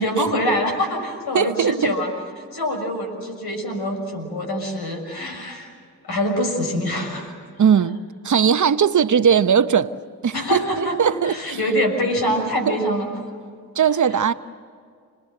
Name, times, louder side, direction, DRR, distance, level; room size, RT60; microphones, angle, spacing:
voice 1, 0.0-2.1 2.5-5.7 6.0-7.3 10.3-13.1, equal, 70° left, 6.6 m, -24 dB
voice 2, 1.3-1.9 7.6-8.0 8.2-9.9 10.2-11.6 12.7-12.8 13.7-14.3, right 7 dB, 50° right, 1.0 m, -19 dB
30.0 x 20.5 x 7.8 m
supercardioid pair, 45°, 39 cm